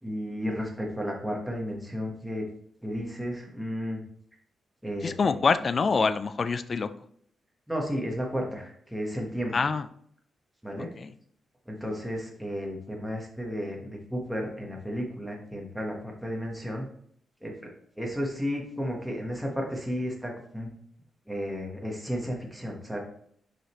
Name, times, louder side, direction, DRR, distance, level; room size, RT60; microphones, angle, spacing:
voice 1, 0.0-2.5 2.8-4.0 4.8-5.4 7.7-9.5 10.6-10.9 11.7-16.9 17.4-17.7 18.0-20.7 21.3-23.0, equal, ahead, -1 dB, 1.2 m, -33 dB
voice 2, 5.0-6.9 9.5-9.9 11.0-11.1, left 4 dB, 35° left, 12 dB, 0.3 m, -25 dB
6.3 x 5.0 x 3.0 m, 0.65 s
wide cardioid pair, 155°, 0 cm